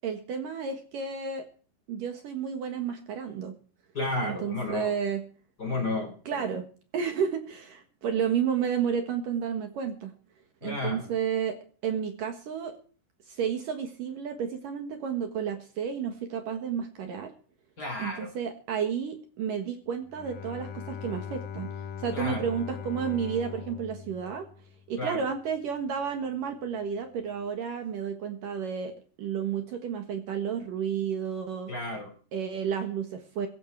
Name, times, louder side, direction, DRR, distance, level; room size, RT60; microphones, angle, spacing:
voice 1, 0.0-1.4 1.9-3.5 4.2-5.2 6.3-6.6 6.9-10.1 10.6-11.6 11.8-12.8 13.3-17.3 18.0-24.5 24.9-31.7 32.3-33.5, right 7 dB, 60° right, 7 dB, 2.8 m, -31 dB
voice 2, 3.9-4.9 5.6-6.5 10.6-11.1 17.8-18.3 22.1-22.5 25.0-25.3 31.7-32.1, left 2 dB, 25° left, 5 dB, 3.5 m, -32 dB
Bowed string instrument, 20.1-25.0, left 7 dB, 60° left, 2.8 m, -40 dB
17.0 x 15.0 x 4.6 m, 0.41 s
omnidirectional pair, 4.9 m